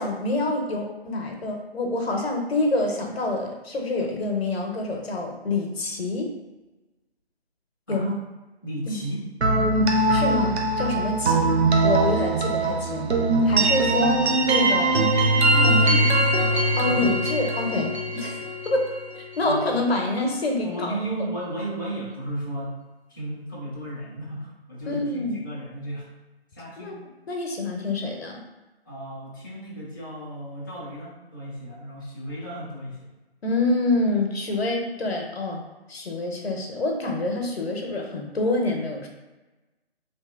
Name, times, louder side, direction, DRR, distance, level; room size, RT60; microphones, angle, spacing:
voice 1, 0.0-6.3 7.9-8.1 8.9-9.0 9.7-11.5 11.8-13.1 13.4-15.1 15.5-15.9 16.8-18.9 19.4-21.0 24.9-25.4 26.8-27.0 27.3-28.4 33.4-35.6 35.9-39.1, left 2 dB, 70° left, 2 dB, 0.7 m, -27 dB
voice 2, 8.6-9.2 15.5-17.1 19.4-19.9 20.6-22.8 23.1-26.1 26.5-27.0 28.9-33.1, right 1 dB, 20° left, -10 dB, 0.4 m, -34 dB
sound 1, 9.4-19.2, right 2 dB, 80° right, 0.6 m, -21 dB
3.2 x 2.8 x 2.3 m, 1.1 s
figure-of-eight pair, 150°, 32 cm